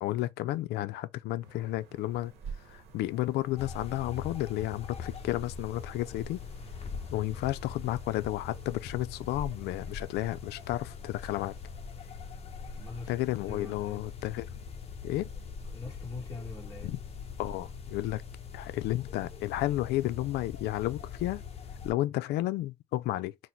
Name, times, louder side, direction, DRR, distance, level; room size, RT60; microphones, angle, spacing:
voice 1, 0.0-6.4 7.1-11.5 13.1-14.5 15.0-15.3 16.8-17.0 17.4-18.2 18.5-21.4 21.8-23.3, left 16 dB, 75° left, 0.4 m, -32 dB
sound 1, 1.4-9.7, right 6 dB, 80° right, 1.1 m, -58 dB
sound 2, 1.9-21.5, right 6 dB, 35° right, 1.0 m, -55 dB
sound 3, 3.6-21.9, left 5 dB, 35° left, 0.8 m, -42 dB
voice 2, 12.8-13.1 13.5-14.0 15.7-16.9, left 3 dB, 20° left, 1.6 m, -43 dB
4.0 x 2.1 x 4.5 m
cardioid pair, 110°, 17 cm